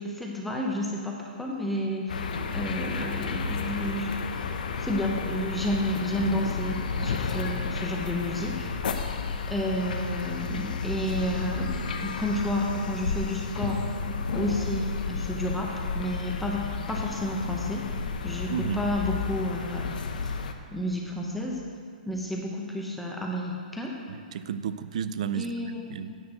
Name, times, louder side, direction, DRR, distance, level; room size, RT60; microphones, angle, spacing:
voice 1, 0.0-4.1 4.8-8.7 9.5-11.7 12.0-13.8 14.3-17.8 18.2-19.9 20.2-20.3 20.7-21.6 22.1-23.9 25.3-26.1, equal, ahead, -2 dB, 0.7 m, -31 dB
sound 1, 2.1-20.5, left 5 dB, 65° left, 0.7 m, -32 dB
sound 2, 11.2-19.8, left 3 dB, 35° left, 1.5 m, -40 dB
voice 2, 18.5-18.9 24.1-26.2, right 8 dB, 45° right, 13 dB, 0.4 m, -33 dB
9.6 x 4.5 x 7.6 m, 2.2 s
hypercardioid pair, 175°, 5 cm